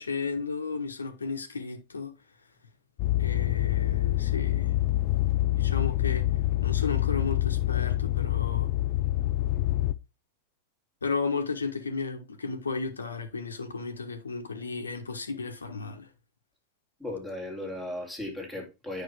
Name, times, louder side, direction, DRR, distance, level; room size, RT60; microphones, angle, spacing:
voice 1, 0.0-2.1 3.2-4.7 5.6-6.3 6.6-8.7 11.0-16.1, left 4 dB, 75° left, 1.3 m, -34 dB
sound 1, 3.0-9.9, left 15 dB, 45° left, 0.5 m, -26 dB
voice 2, 17.0-19.0, left 1 dB, 5° right, 3.4 m, -36 dB
9.0 x 5.7 x 3.6 m
figure-of-eight pair, 90°, 0 cm